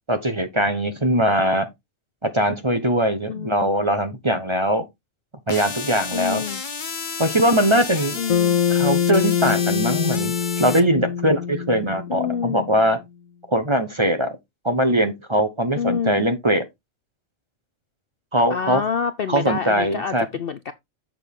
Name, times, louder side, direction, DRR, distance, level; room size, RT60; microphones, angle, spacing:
voice 1, 0.1-1.7 2.2-4.8 5.5-6.4 7.2-8.2 8.7-13.0 13.5-14.3 14.6-16.7 18.3-18.8 19.3-20.3, right 1 dB, 25° right, 1.0 m, -21 dB
voice 2, 3.3-3.7 6.1-6.6 8.1-8.6 12.1-12.7 15.8-16.3 18.5-20.7, left 7 dB, 55° left, 0.7 m, -27 dB
sound 1, 5.5-10.8, left 5 dB, 40° left, 1.2 m, -31 dB
Bass guitar, 8.3-12.7, left 8 dB, 75° left, 1.3 m, -23 dB
7.4 x 6.7 x 3.6 m
omnidirectional pair, 1.4 m